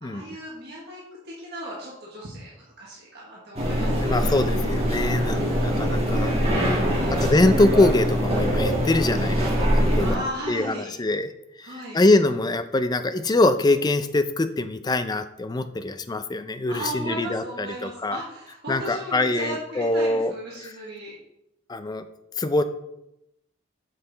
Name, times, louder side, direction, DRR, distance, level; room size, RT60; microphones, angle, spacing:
voice 1, 0.0-4.2 5.1-6.1 6.8-7.3 10.0-11.0 11.6-12.0 16.7-21.1, right 1 dB, 55° right, -5 dB, 1.4 m, -36 dB
sound 1, 3.6-10.1, equal, 30° right, 1.6 m, -23 dB
voice 2, 3.8-6.4 6.9-11.3 11.6-18.2 18.7-20.3 20.6-20.7 21.7-22.0 22.4-22.6, left 2 dB, 20° left, 10 dB, 0.4 m, -24 dB
6.5 x 5.7 x 3.9 m, 0.86 s
head